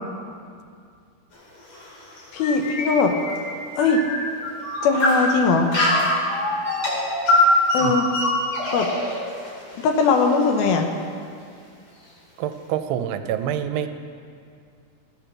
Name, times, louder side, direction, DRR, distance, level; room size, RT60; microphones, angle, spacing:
sound 1, 1.3-3.4 3.9-4.0 4.6-6.1 6.6-10.9, left 1 dB, 40° left, 2.5 m, -24 dB
voice 1, 2.3-3.2 3.8-4.0 4.8-5.7 7.7-8.1 8.7-8.9 9.8-10.9, left 4 dB, 75° left, 4 dB, 2.5 m, -20 dB
sound 2, 2.4-5.2 5.7-7.5, left 1 dB, 60° left, 3.0 m, -29 dB
voice 2, 12.4-13.9, right 10 dB, 90° right, 8 dB, 2.6 m, -26 dB
16.0 x 6.8 x 6.0 m, 2.3 s
omnidirectional pair, 4.7 m